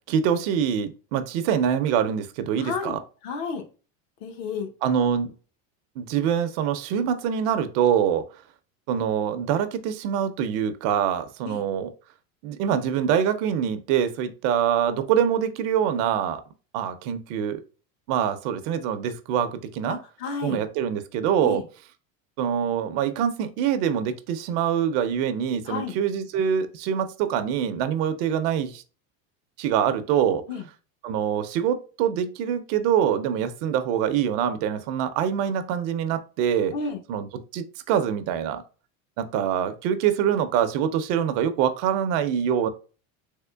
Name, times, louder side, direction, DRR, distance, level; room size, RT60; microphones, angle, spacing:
voice 1, 0.1-3.0 4.8-5.3 6.0-8.2 8.9-11.9 12.4-16.4 16.7-17.6 18.1-20.0 20.4-21.6 22.4-28.8 29.6-30.4 31.0-36.7 37.1-37.3 37.5-38.6 39.2-42.7, right 8 dB, 65° right, 10 dB, 0.6 m, -24 dB
voice 2, 2.6-3.0 3.2-3.6 4.2-4.7 11.4-11.6 19.9-20.6 21.4-21.6 25.7-25.9 30.5-30.7 36.7-37.0, left 5 dB, 60° left, 5 dB, 0.9 m, -31 dB
3.5 x 3.1 x 2.2 m, 0.35 s
cardioid pair, 150°, 38 cm